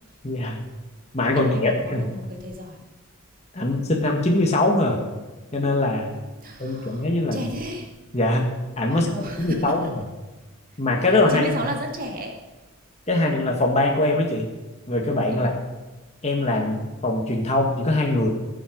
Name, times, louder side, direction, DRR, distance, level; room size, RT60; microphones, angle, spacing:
voice 1, 0.2-0.6 1.1-2.1 3.5-5.0 5.5-6.1 6.6-7.5 8.1-9.1 9.4-10.0 10.8-11.5 13.1-14.5 14.9-15.5 16.2-18.3, left 2 dB, 30° left, 0 dB, 1.6 m, -22 dB
voice 2, 1.3-2.8 6.4-7.9 8.9-9.9 11.3-12.4 15.3-15.6, equal, 40° right, 2 dB, 2.2 m, -33 dB
20.5 x 7.8 x 5.2 m, 1.2 s
head